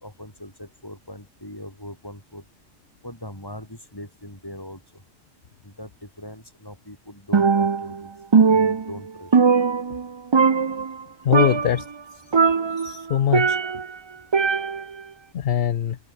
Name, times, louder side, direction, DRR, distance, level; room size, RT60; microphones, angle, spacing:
voice 1, 0.0-2.4 3.0-4.8 5.6-8.1 8.5-9.3, left 1 dB, 15° left, 5.0 m, -40 dB
Percussion, 7.3-8.0 8.3-10.1 10.3-11.0 11.3-11.8 12.3-13.9 14.3-15.0, right 5 dB, 35° right, 0.4 m, -20 dB
voice 2, 11.2-11.9 12.8-13.6 15.3-16.0, left 10 dB, 55° left, 0.8 m, -22 dB
open air
omnidirectional pair, 1.3 m